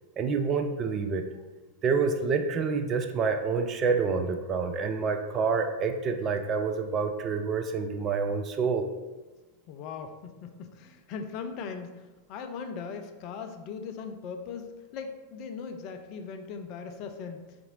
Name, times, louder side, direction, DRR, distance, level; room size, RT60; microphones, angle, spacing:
voice 1, 0.2-1.2 1.8-8.9, right 5 dB, 30° right, 6 dB, 0.3 m, -27 dB
voice 2, 9.7-17.5, left 5 dB, 40° left, 5 dB, 0.4 m, -39 dB
4.0 x 2.5 x 3.9 m, 1.2 s
figure-of-eight pair, 90°, 0 cm